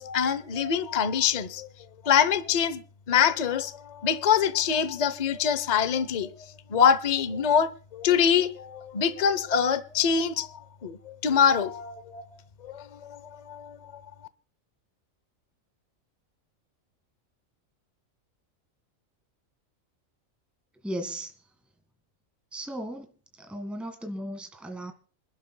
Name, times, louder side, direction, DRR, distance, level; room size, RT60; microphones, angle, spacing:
voice 1, 0.0-1.7 2.0-6.3 6.7-10.5 10.8-12.3 12.6-14.0, left 7 dB, 35° left, 0.8 m, -25 dB
voice 2, 20.8-21.3 22.5-23.1 23.4-24.9, right 1 dB, ahead, 1.6 m, -36 dB
27.0 x 12.0 x 2.2 m
omnidirectional pair, 1.4 m